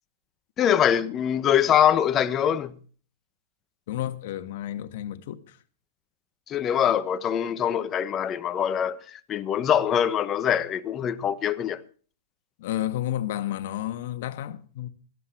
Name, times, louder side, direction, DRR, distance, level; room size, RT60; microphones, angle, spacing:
voice 1, 0.6-2.8 6.5-11.8, left 9 dB, 25° left, 1.1 m, -23 dB
voice 2, 3.9-5.6 12.6-14.9, left 12 dB, 60° left, 1.7 m, -31 dB
16.5 x 14.0 x 4.6 m
supercardioid pair, 145°, 0 cm